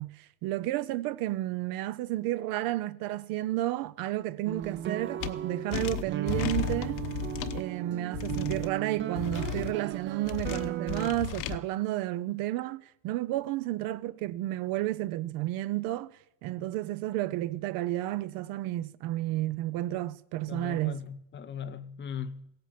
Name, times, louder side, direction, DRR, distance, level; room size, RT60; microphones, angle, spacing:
voice 1, 0.0-7.0 7.5-16.1 16.4-21.0, right 15 dB, 85° right, 0.8 m, -32 dB
sound 1, 4.5-11.1, right 11 dB, 35° right, 0.5 m, -36 dB
sound 2, 5.2-5.3 5.7-7.6 8.1-8.7 9.2-9.7 10.2-11.6, left 11 dB, 65° left, 1.0 m, -34 dB
voice 2, 20.5-22.5, left 7 dB, 35° left, 0.9 m, -39 dB
16.5 x 8.9 x 7.6 m
cardioid pair, 145°, 34 cm